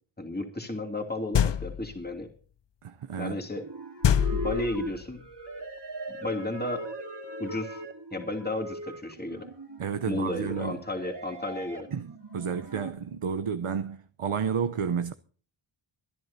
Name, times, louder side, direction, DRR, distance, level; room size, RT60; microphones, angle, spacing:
voice 1, 0.2-2.3 3.2-3.6 4.3-5.2 6.1-6.9 7.4-7.8 8.1-9.5 10.1-11.9, left 2 dB, 20° left, 2.7 m, -33 dB
sound 1, 1.3-2.0 4.0-5.0, left 8 dB, 60° left, 0.6 m, -25 dB
voice 2, 2.8-3.4 9.8-10.8 11.9-15.1, right 7 dB, 80° right, 0.9 m, -31 dB
sound 2, 3.5-12.9, right 1 dB, 50° right, 3.0 m, -40 dB
24.5 x 11.5 x 2.8 m
wide cardioid pair, 60°, 50 cm